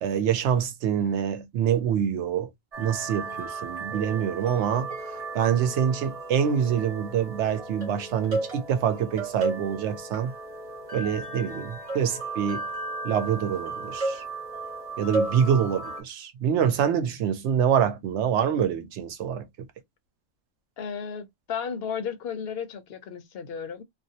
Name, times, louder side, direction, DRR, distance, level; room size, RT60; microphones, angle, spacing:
voice 1, 0.0-2.5 2.8-4.9 5.3-10.3 10.9-12.7 13.0-14.2 15.0-19.5, right 8 dB, 80° right, 0.9 m, -25 dB
sound 1, 2.7-16.0, right 2 dB, 35° right, 0.8 m, -34 dB
voice 2, 20.8-23.8, left 7 dB, 65° left, 0.8 m, -34 dB
2.4 x 2.0 x 2.6 m
omnidirectional pair, 1.2 m